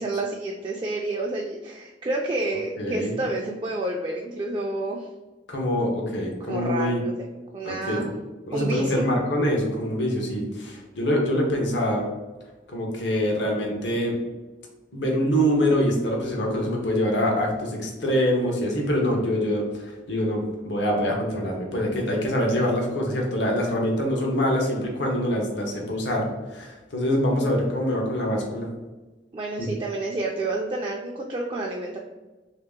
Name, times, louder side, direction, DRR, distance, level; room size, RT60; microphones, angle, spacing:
voice 1, 0.0-5.1 6.4-8.1 8.5-9.1 29.3-32.0, right 2 dB, 25° right, -1 dB, 0.3 m, -29 dB
voice 2, 2.8-3.1 5.5-7.0 7.6-8.0 8.5-12.1 12.7-14.1 14.9-28.7 29.6-29.7, equal, 85° left, 0 dB, 0.9 m, -25 dB
3.1 x 2.8 x 3.5 m, 1.1 s
head